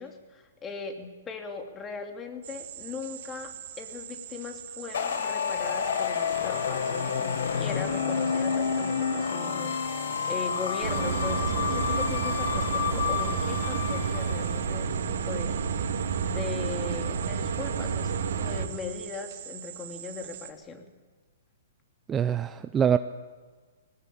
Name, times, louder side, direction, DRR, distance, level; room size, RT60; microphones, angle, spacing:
voice 1, 0.0-15.6 16.2-20.9, left 4 dB, 20° left, 5 dB, 2.9 m, -39 dB
sound 1, 2.4-20.5, right 11 dB, 55° right, 2.6 m, -43 dB
sound 2, 4.9-14.6, left 7 dB, 70° left, 1.6 m, -29 dB
sound 3, 10.8-18.7, right 6 dB, 70° right, 2.9 m, -30 dB
voice 2, 22.1-23.0, right 8 dB, 15° right, 11 dB, 0.6 m, -24 dB
21.0 x 19.0 x 8.7 m, 1.5 s
hypercardioid pair, 135°, 0 cm